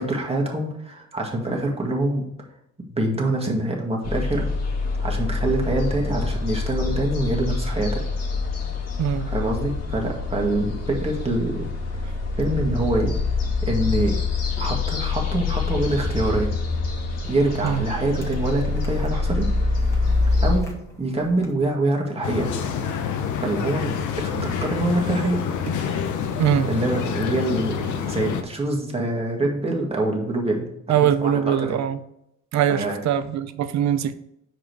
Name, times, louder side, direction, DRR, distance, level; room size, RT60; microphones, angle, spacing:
voice 1, 0.0-2.3 2.9-4.5 5.0-8.0 9.3-11.7 12.4-13.2 13.6-14.2 14.6-16.6 17.3-19.5 20.4-20.7 21.0-22.5 23.4-25.4 26.7-31.8 32.7-33.0, right 1 dB, 20° right, 0 dB, 1.8 m, -25 dB
sound 1, 4.0-20.6, left 3 dB, 60° left, 2.0 m, -25 dB
sound 2, 14.6-14.7 15.9-16.1 17.2-19.1 19.8-21.5, left 2 dB, 10° left, 1.6 m, -41 dB
sound 3, 22.2-28.4, left 7 dB, 80° left, 0.9 m, -27 dB
voice 2, 30.9-32.0 32.5-34.1, right 9 dB, 65° right, 12 dB, 0.6 m, -22 dB
6.0 x 5.0 x 4.7 m, 0.79 s
cardioid pair, 90°, 30 cm